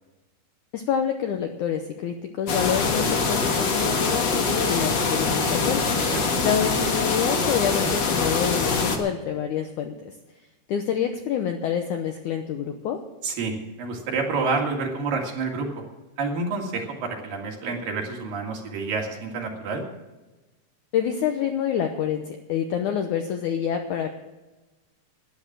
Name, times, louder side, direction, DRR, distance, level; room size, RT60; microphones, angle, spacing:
voice 1, 0.7-5.9 6.4-10.1 10.7-13.0 20.9-24.1, left 8 dB, 80° left, 5 dB, 1.8 m, -27 dB
sound 1, 2.5-9.0, left 4 dB, 60° left, 1.1 m, -24 dB
voice 2, 13.2-15.8 16.2-19.8, right 4 dB, 65° right, 1 dB, 3.7 m, -28 dB
12.0 x 10.5 x 7.4 m, 1.1 s
omnidirectional pair, 4.6 m